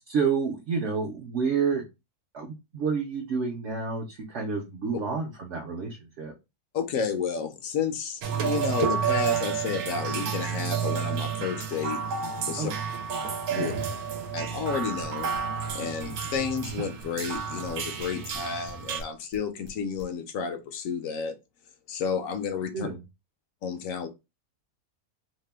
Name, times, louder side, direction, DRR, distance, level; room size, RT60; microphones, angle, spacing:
voice 1, 0.1-1.8 2.3-6.3 12.6-12.7 13.5-13.7 22.7-23.0, right 5 dB, 60° right, 0.8 m, -29 dB
voice 2, 6.7-12.0 12.5-12.7 13.6-13.7 14.3-15.3 15.7-21.3 21.9-22.9 23.6-24.1, left 6 dB, 70° left, 0.9 m, -31 dB
sound 1, 8.2-19.0, right 7 dB, 80° right, 1.1 m, -31 dB
sound 2, 15.0-16.7 17.0-18.7 19.0-20.0, right 1 dB, 30° right, 0.5 m, -48 dB
2.8 x 2.2 x 3.2 m
omnidirectional pair, 1.6 m